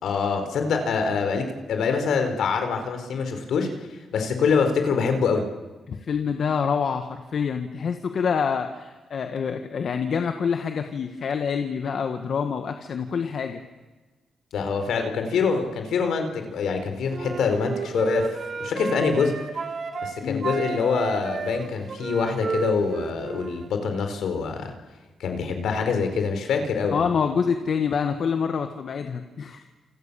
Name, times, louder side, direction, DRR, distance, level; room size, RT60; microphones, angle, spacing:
voice 1, 0.0-3.7 4.1-5.4 14.5-18.3 18.6-19.3 20.0-24.7 25.2-27.1, left 5 dB, 85° left, 6 dB, 4.7 m, -25 dB
voice 2, 5.9-13.6 20.2-20.5 26.9-29.6, left 6 dB, 65° left, 6 dB, 1.8 m, -26 dB
Wind instrument woodwind instrument, 17.1-20.1 20.4-23.7, right 4 dB, 55° right, 3.7 m, -31 dB
28.5 x 28.0 x 7.2 m, 1.2 s
cardioid pair, 70°, 0 cm